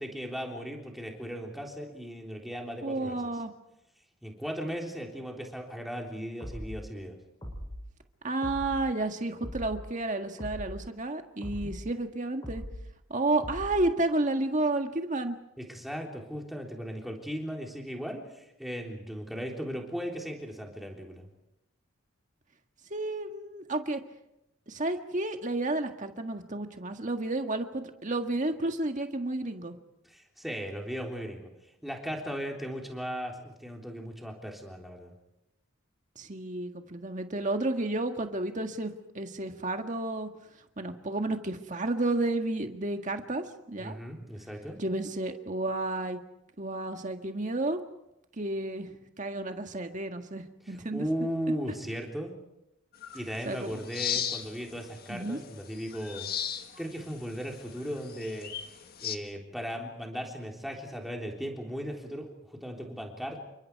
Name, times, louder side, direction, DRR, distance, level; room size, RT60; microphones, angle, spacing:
voice 1, 0.0-3.2 4.2-7.2 11.6-11.7 15.7-21.3 30.1-31.5 31.8-35.1 43.8-44.8 50.7-52.4 53.1-56.3 56.8-58.5 59.0-63.4, equal, ahead, 0 dB, 3.6 m, -37 dB
voice 2, 2.8-3.5 8.2-12.6 13.1-15.4 22.9-24.0 24.7-29.7 36.1-40.3 40.8-44.0 44.8-46.2 46.6-47.8 48.4-51.0 53.4-53.8 55.1-55.4, right 2 dB, 35° right, 5 dB, 1.8 m, -31 dB
sound 1, 6.4-6.8 7.4-7.8 8.4-8.8 9.4-9.8 10.4-10.8 11.4-11.8 12.4-12.8 13.4-13.8, equal, 20° left, 6.9 m, -39 dB
sound 2, 53.0-59.2, left 9 dB, 45° left, 1.6 m, -38 dB
29.5 x 24.5 x 4.8 m, 0.89 s
head